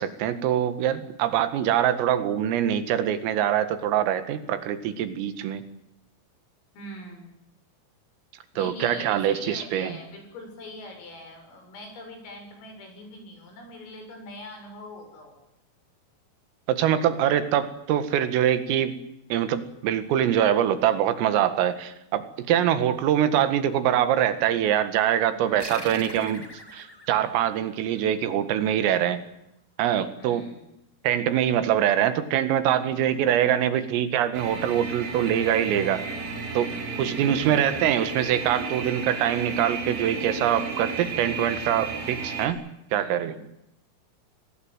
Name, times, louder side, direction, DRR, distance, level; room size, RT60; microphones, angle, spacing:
voice 1, 0.0-5.6 8.6-10.0 16.7-19.0 19.3-26.4 26.7-29.2 29.8-30.5 31.0-36.1 36.5-36.7 37.0-42.6 42.9-43.4, right 10 dB, 90° right, 12 dB, 4.5 m, -24 dB
voice 2, 6.7-7.3 8.5-15.4 25.3-26.2 30.2-30.6 36.9-37.6 42.9-43.4, left 1 dB, 85° left, 4 dB, 9.6 m, -43 dB
sound 1, 25.6-28.6, left 1 dB, 10° left, 1.6 m, -42 dB
sound 2, 34.3-42.5, right 4 dB, 70° right, 6.5 m, -33 dB
25.5 x 19.0 x 9.2 m, 0.83 s
omnidirectional pair, 5.8 m